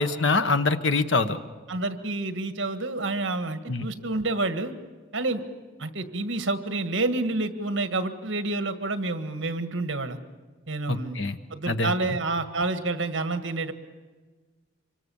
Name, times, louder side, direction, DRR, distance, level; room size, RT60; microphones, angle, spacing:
voice 1, 0.0-1.4 3.7-3.9 10.9-11.4 11.7-11.9, left 3 dB, 65° left, 9 dB, 1.2 m, -24 dB
voice 2, 1.7-4.7 5.1-5.4 5.8-10.2 10.7-11.2 11.5-13.7, right 2 dB, 65° right, 9 dB, 1.7 m, -28 dB
26.0 x 24.5 x 7.2 m, 1.4 s
head